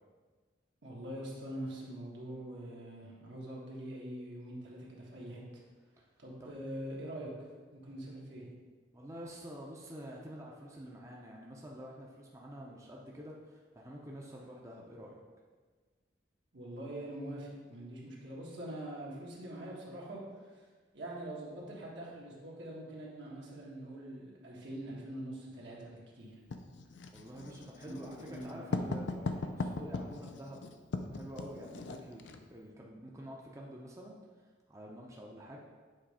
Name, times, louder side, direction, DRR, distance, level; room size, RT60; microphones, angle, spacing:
voice 1, 0.8-5.6 6.2-8.5 16.5-20.6 20.9-26.4 27.8-28.6, right 1 dB, 75° right, -4 dB, 1.5 m, -44 dB
voice 2, 8.9-15.2 27.1-30.6 31.1-34.2 34.7-35.6, equal, 15° right, -2 dB, 0.6 m, -48 dB
Writing, 26.5-32.4, left 3 dB, 75° left, 0.5 m, -39 dB
7.5 x 3.1 x 4.9 m, 1.4 s
head